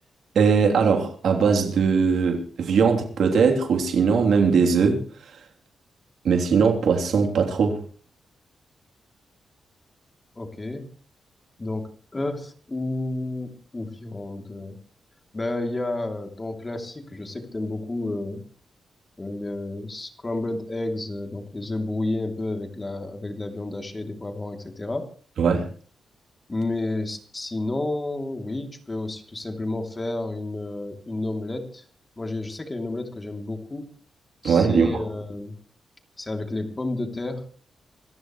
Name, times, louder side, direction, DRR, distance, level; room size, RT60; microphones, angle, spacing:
voice 1, 0.3-5.0 6.2-7.8 25.4-25.6 34.4-35.0, right 5 dB, 80° right, 3.3 m, -20 dB
voice 2, 10.3-10.9 11.6-14.8 15.3-18.4 19.2-25.1 26.5-31.8 32.2-33.9 34.4-35.6 36.2-37.4, left 2 dB, 25° left, 3.0 m, -31 dB
25.5 x 14.5 x 3.2 m
cardioid pair, 70°, 0 cm